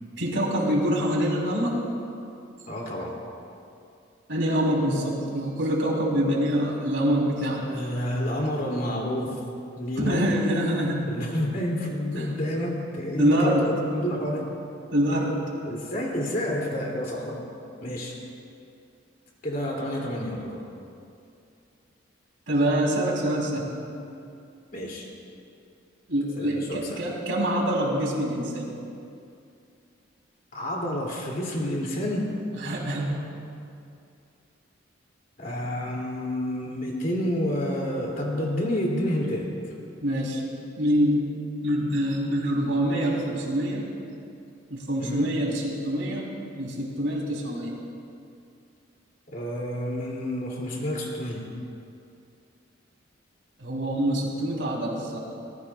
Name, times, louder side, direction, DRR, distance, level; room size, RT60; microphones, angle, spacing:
voice 1, 0.2-1.8 4.3-7.9 10.0-11.1 12.2-12.3 13.2-13.7 14.9-15.4 22.5-23.6 26.1-28.7 32.5-33.3 40.0-40.4 40.8-41.3 41.6-43.9 44.7-46.3 46.6-47.7 53.6-55.2, equal, 75° right, -2 dB, 3.6 m, -25 dB
voice 2, 2.7-3.2 7.6-9.4 9.7-10.2 11.0-14.6 15.6-17.5 17.8-18.2 19.4-20.6 24.0-24.1 24.7-25.1 26.4-27.0 30.5-32.3 35.4-39.7 45.0-45.3 49.3-51.6, left 1 dB, 45° left, -2 dB, 2.8 m, -29 dB
23.5 x 19.0 x 2.4 m, 2.5 s
head